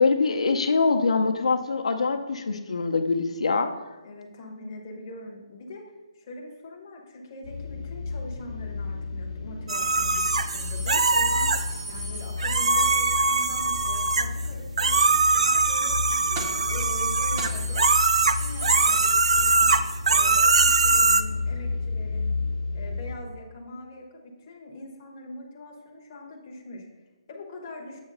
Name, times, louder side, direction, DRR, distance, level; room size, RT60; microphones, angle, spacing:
voice 1, 0.0-3.7, left 4 dB, 80° left, 5 dB, 0.6 m, -23 dB
voice 2, 4.0-17.9 18.3-19.8 20.1-22.4 22.7-28.0, left 2 dB, 20° left, -1 dB, 0.7 m, -42 dB
sound 1, 7.4-23.2, left 4 dB, 60° left, 1.0 m, -32 dB
sound 2, 9.7-11.6 12.4-14.5 14.8-21.2, right 3 dB, 90° right, 0.4 m, -22 dB
sound 3, 10.2-12.9 16.4-16.8 17.0-17.1 17.4-20.1 20.4-20.5 21.6-21.7, right 2 dB, 20° right, 0.6 m, -39 dB
7.4 x 2.9 x 5.3 m, 1.1 s
hypercardioid pair, 180°, 3 cm